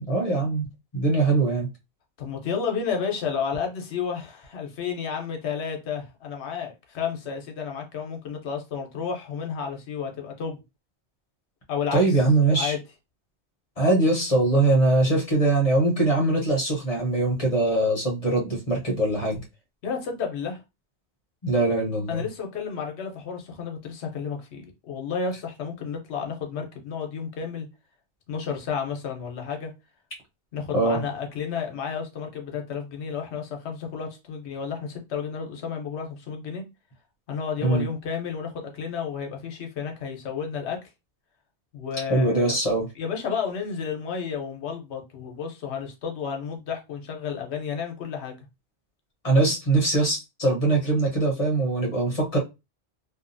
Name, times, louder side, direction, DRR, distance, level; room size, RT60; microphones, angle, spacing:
voice 1, 0.1-0.7 0.9-1.7 11.9-12.7 13.8-19.4 21.4-22.2 30.7-31.0 37.6-37.9 42.1-42.9 49.2-52.4, right 2 dB, 35° left, 0.8 m, -22 dB
voice 2, 2.2-10.6 11.7-12.0 12.5-12.8 19.8-20.6 22.1-27.7 28.3-29.7 30.5-36.6 37.3-40.8 41.7-42.6 43.0-48.4, left 6 dB, 80° left, 1.0 m, -31 dB
2.7 x 2.4 x 2.5 m
omnidirectional pair, 1.1 m